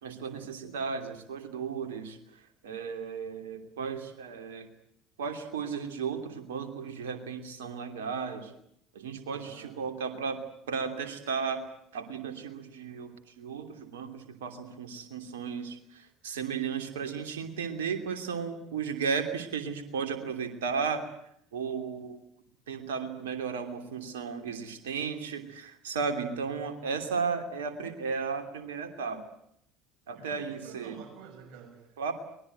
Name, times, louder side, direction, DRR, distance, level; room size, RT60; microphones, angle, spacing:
voice 1, 0.0-4.7 5.2-8.5 8.9-10.4 10.7-11.6 11.9-21.0 21.5-22.2 22.7-29.2 30.1-31.0 32.0-32.1, right 5 dB, 70° right, 7 dB, 3.0 m, -34 dB
voice 2, 9.3-10.1 26.5-26.6 30.1-32.1, right 7 dB, 50° right, 4 dB, 7.5 m, -50 dB
23.0 x 21.0 x 9.2 m, 0.72 s
figure-of-eight pair, 60°, 0 cm